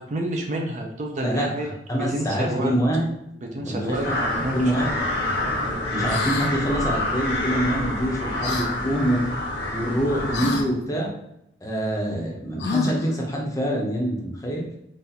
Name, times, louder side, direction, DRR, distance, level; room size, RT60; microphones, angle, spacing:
voice 1, 0.0-1.7 2.0-2.8 3.4-4.9, right 1 dB, 40° right, 1 dB, 0.4 m, -29 dB
voice 2, 1.9-3.0 3.6-4.2 4.5-4.9 5.9-9.3 9.7-11.1 11.6-14.6, right 1 dB, 20° left, -2 dB, 0.6 m, -25 dB
sound 1, 3.9-10.6, left 1 dB, 85° left, 1.1 m, -27 dB
sound 2, 6.1-6.5 8.4-8.7 10.3-10.7 12.6-13.1, left 4 dB, 65° left, 0.4 m, -27 dB
4.0 x 2.4 x 2.7 m, 0.82 s
head